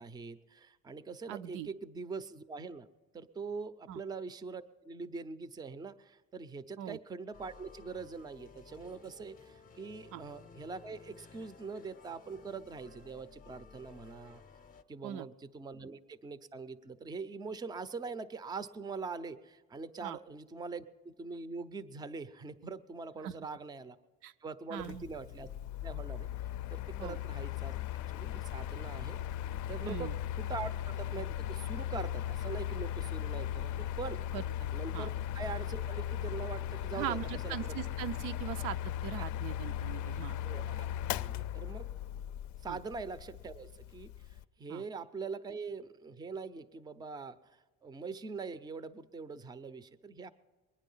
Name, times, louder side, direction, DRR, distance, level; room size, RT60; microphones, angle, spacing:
voice 1, 0.0-2.9 3.1-14.4 14.9-24.0 24.4-25.5 25.8-26.3 26.7-27.7 28.1-29.2 29.7-30.1 30.4-34.2 34.7-37.2 37.4-37.7 38.3-38.4 40.4-40.9 41.1-41.9 42.6-50.3, right 4 dB, 15° right, 14 dB, 0.4 m, -43 dB
voice 2, 1.3-1.7 3.9-4.0 6.8-7.0 10.1-10.2 15.0-15.3 20.0-20.2 23.2-23.3 24.2-24.3 24.7-25.1 27.0-27.2 29.8-30.2 34.3-34.4 34.9-35.1 36.9-40.4 42.7-42.8 44.7-44.8, right 11 dB, 85° right, 12 dB, 0.5 m, -40 dB
sound 1, 7.3-14.8, left 5 dB, 30° left, 0.6 m, -56 dB
Mechanical fan, 24.8-44.4, left 11 dB, 70° left, 0.5 m, -38 dB
22.0 x 9.8 x 5.5 m, 1.3 s
cardioid pair, 150°, 31 cm